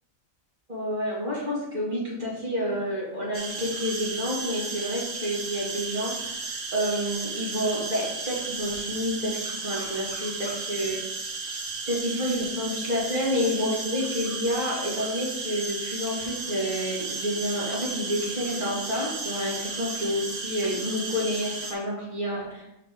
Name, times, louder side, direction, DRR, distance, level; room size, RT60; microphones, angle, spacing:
voice 1, 0.7-6.1 6.7-11.0 11.9-22.7, equal, 35° right, -6 dB, 2.3 m, -29 dB
sound 1, 3.3-21.7, right 4 dB, 65° right, 1.3 m, -34 dB
5.9 x 5.8 x 3.6 m, 0.92 s
omnidirectional pair, 1.4 m